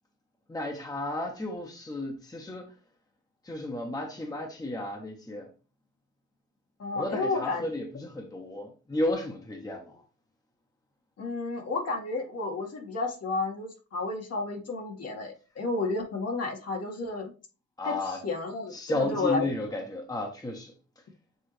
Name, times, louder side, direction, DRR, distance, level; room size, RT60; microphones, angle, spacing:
voice 1, 0.5-2.7 3.4-5.5 6.9-10.0 17.8-18.2 18.7-20.7, left 1 dB, 10° left, 1.3 m, -33 dB
voice 2, 6.8-7.6 11.2-17.3 17.8-19.5, left 3 dB, 55° left, 2.0 m, -31 dB
8.0 x 3.7 x 3.3 m
cardioid pair, 90°, 30 cm